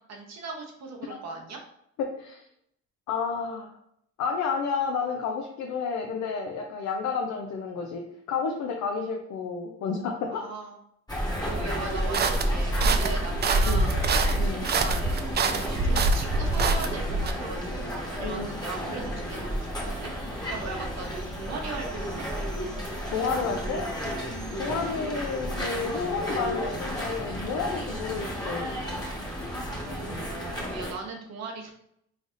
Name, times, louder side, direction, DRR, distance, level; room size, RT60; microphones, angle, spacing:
voice 1, 0.0-1.6 10.3-10.8 11.4-14.0 14.6-15.1 15.6-22.3 29.7-31.7, right 3 dB, 60° right, 1 dB, 1.0 m, -39 dB
voice 2, 2.0-2.4 3.1-3.7 4.2-10.4 13.7-13.9 14.4-14.6 18.2-18.6 23.1-23.9 24.6-28.7, left 5 dB, 75° left, 2 dB, 0.5 m, -31 dB
sound 1, 11.1-30.9, equal, 15° left, 1.2 m, -32 dB
sound 2, 12.1-17.3, right 3 dB, 35° right, 0.4 m, -25 dB
3.9 x 3.3 x 2.5 m, 0.73 s
cardioid pair, 90°, 30 cm